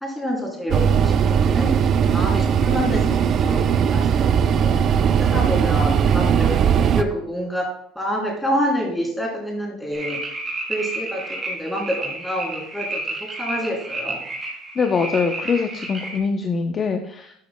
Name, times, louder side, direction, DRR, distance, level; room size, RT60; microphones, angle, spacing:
voice 1, 0.0-1.7 2.1-4.7 5.2-7.6 7.9-10.2 10.7-13.0 13.4-14.2, equal, 5° left, -2 dB, 3.3 m, -27 dB
sound 1, 0.7-7.0, right 7 dB, 40° right, 0.5 m, -18 dB
sound 2, 9.9-16.2, right 2 dB, 20° right, 2.5 m, -31 dB
voice 2, 14.8-17.3, left 5 dB, 30° left, 4 dB, 0.7 m, -23 dB
12.5 x 8.3 x 2.2 m, 0.71 s
cardioid pair, 140°, 0 cm